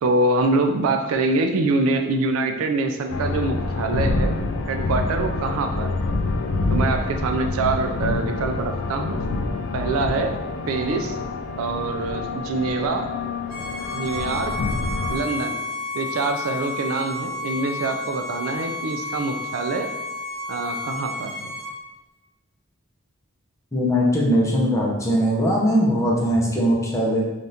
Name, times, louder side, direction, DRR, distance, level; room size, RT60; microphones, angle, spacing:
voice 1, 0.0-4.4 4.7-6.2 6.7-9.2 9.7-10.4 10.7-11.2 11.6-13.1 13.9-14.5 15.1-15.6 15.9-19.9 20.5-21.5, right 3 dB, 85° right, 5 dB, 0.3 m, -25 dB
sound 1, 3.1-15.2, left 3 dB, 65° left, 0.3 m, -27 dB
Bowed string instrument, 13.5-21.7, left 2 dB, 50° right, 1.2 m, -31 dB
voice 2, 23.7-27.2, equal, 15° left, -3 dB, 0.5 m, -20 dB
3.4 x 2.4 x 2.7 m, 1.1 s
head